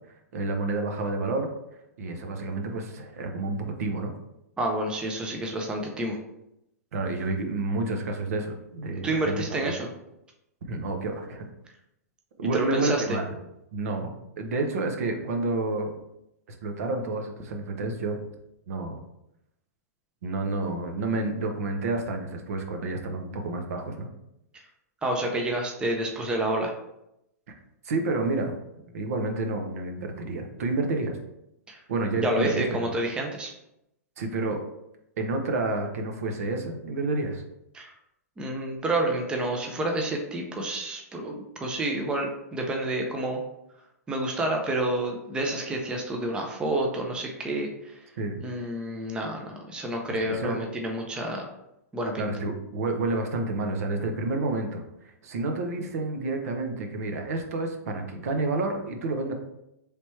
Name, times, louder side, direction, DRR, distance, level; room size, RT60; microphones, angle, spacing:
voice 1, 0.3-1.5 2.0-4.1 6.9-9.7 10.7-11.5 12.4-13.4 13.7-15.9 16.5-18.2 18.7-19.0 20.2-24.1 27.8-28.5 28.9-31.2 31.9-32.9 34.2-34.6 35.2-37.4 48.2-48.4 50.2-50.6 52.2-54.8 55.2-59.3, right 2 dB, 65° right, 3 dB, 0.8 m, -29 dB
voice 2, 4.6-6.2 9.0-9.8 12.5-13.0 24.5-24.6 25.0-26.7 31.7-31.8 32.2-33.5 37.7-37.9 38.4-43.4 44.1-48.0 48.4-51.5 51.9-52.3, right 1 dB, 10° right, 1 dB, 0.5 m, -29 dB
3.4 x 2.9 x 4.3 m, 0.84 s
hypercardioid pair, 135°, 9 cm